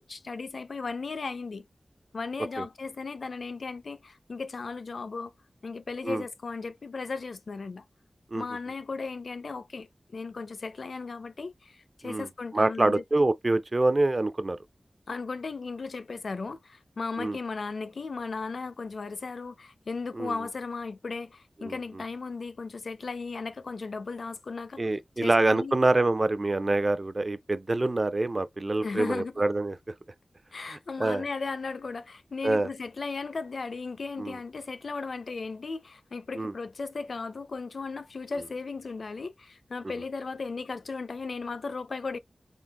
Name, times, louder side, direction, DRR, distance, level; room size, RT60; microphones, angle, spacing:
voice 1, 0.0-1.6 2.1-5.3 5.6-7.8 8.3-13.0 15.1-25.8 28.8-29.3 30.5-42.2, left 4 dB, 75° left, 0.5 m, -36 dB
voice 2, 12.5-14.6 17.2-17.4 20.2-20.3 21.6-21.8 24.8-29.8 31.0-31.2 32.4-32.7 34.2-34.4 36.3-36.5, right 2 dB, 40° right, 0.5 m, -25 dB
3.9 x 2.6 x 3.4 m
wide cardioid pair, 65°, 0 cm